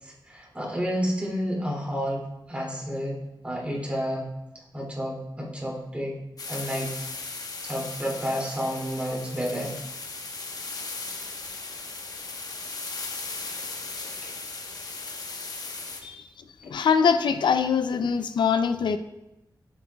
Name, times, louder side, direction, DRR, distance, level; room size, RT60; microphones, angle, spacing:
voice 1, 0.0-3.2 3.4-4.3 4.7-6.1 6.5-6.9 7.6-9.7 14.2-14.3, equal, 15° right, -4 dB, 2.5 m, -30 dB
sound 1, 6.4-16.0, left 3 dB, 55° left, 1.0 m, -37 dB
voice 2, 16.6-19.0, left 6 dB, 85° left, 10 dB, 0.4 m, -23 dB
14.0 x 7.8 x 2.3 m, 0.91 s
wide cardioid pair, 130°, 8 cm